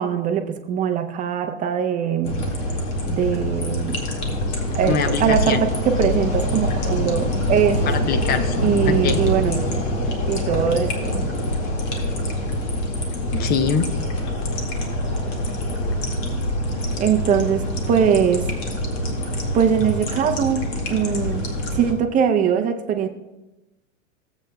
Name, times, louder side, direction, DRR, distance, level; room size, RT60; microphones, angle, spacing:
voice 1, 0.0-2.4 3.0-4.1 4.7-8.1 8.6-9.7 10.3-11.3 17.0-18.5 19.5-21.4 21.7-23.1, right 8 dB, 20° right, 5 dB, 0.6 m, -21 dB
sound 1, 2.2-21.9, left 1 dB, 50° left, 2.0 m, -25 dB
voice 2, 4.9-5.6 7.9-9.2 13.3-13.8, left 6 dB, 25° left, 10 dB, 0.6 m, -24 dB
16.0 x 8.0 x 2.3 m, 1.0 s
hypercardioid pair, 120°, 40 cm